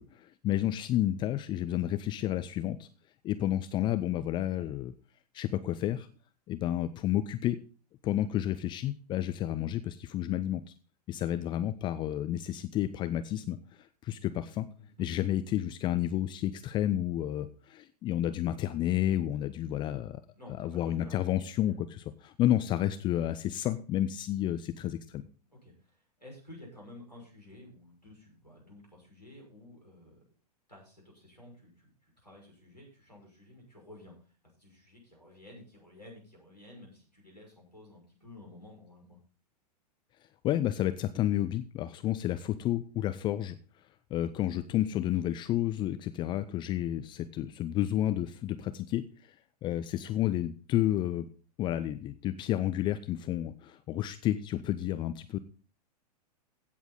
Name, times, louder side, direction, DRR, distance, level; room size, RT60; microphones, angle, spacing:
voice 1, 0.0-2.9 3.2-4.9 5.3-6.1 6.5-7.6 8.0-10.7 11.1-14.7 15.0-20.2 20.6-25.3 40.4-43.5 44.1-49.3 49.6-51.3 51.6-55.4, left 12 dB, 20° left, 12 dB, 0.5 m, -31 dB
voice 2, 14.8-15.1 19.7-19.9 20.3-21.2 21.7-21.8 25.5-30.2 30.7-34.1 34.6-39.2 47.0-47.2, left 1 dB, 90° left, -1 dB, 6.1 m, -52 dB
16.0 x 7.1 x 4.0 m, 0.37 s
figure-of-eight pair, 100°, 21 cm